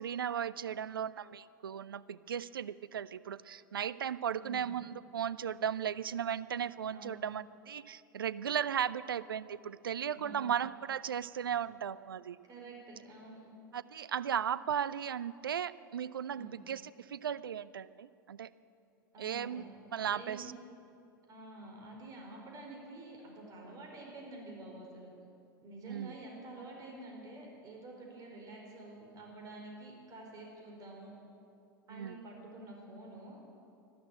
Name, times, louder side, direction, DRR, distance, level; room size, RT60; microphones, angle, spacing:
voice 1, 0.0-12.4 13.7-18.5 19.2-19.6 19.9-20.5 25.8-26.1 31.9-32.2, right 8 dB, 70° right, 18 dB, 0.5 m, -36 dB
voice 2, 10.1-10.5 12.4-13.5 16.3-16.6 19.1-19.6 19.9-20.5 21.3-25.1 25.6-31.1 31.9-33.4, right 2 dB, 30° right, 0 dB, 4.7 m, -49 dB
13.0 x 12.5 x 8.8 m, 2.6 s
figure-of-eight pair, 90°, 12 cm